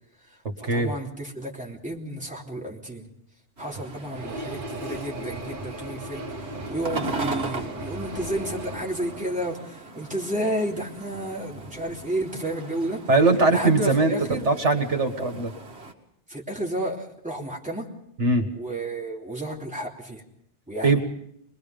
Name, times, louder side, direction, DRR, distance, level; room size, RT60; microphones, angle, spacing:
voice 1, 0.3-3.1 3.6-13.0 13.5-14.5 16.3-17.9 18.5-20.2 20.7-21.0, right 1 dB, 5° right, -2 dB, 3.2 m, -32 dB
sound 1, 3.6-15.9, right 3 dB, 65° right, 2.2 m, -38 dB
sound 2, 4.1-9.6, right 1 dB, 50° right, 1.7 m, -37 dB
voice 2, 13.1-15.5 18.2-18.5 20.8-21.0, right 3 dB, 80° right, 6 dB, 2.1 m, -21 dB
24.5 x 21.0 x 5.3 m, 0.73 s
omnidirectional pair, 1.2 m